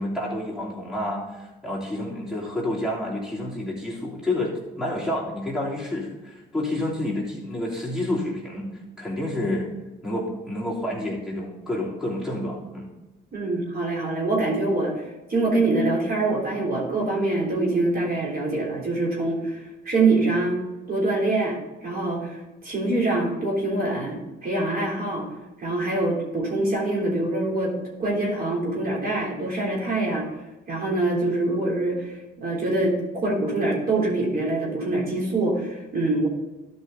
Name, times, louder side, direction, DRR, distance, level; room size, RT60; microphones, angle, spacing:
voice 1, 0.0-9.7 10.0-12.9, left 1 dB, 5° right, -5 dB, 3.2 m, -29 dB
voice 2, 13.3-15.0 15.3-20.6 20.9-25.3 25.6-30.3 30.7-36.3, right 2 dB, 50° right, -3 dB, 3.5 m, -25 dB
12.5 x 5.5 x 4.0 m, 1.1 s
cardioid pair, 90°, 20 cm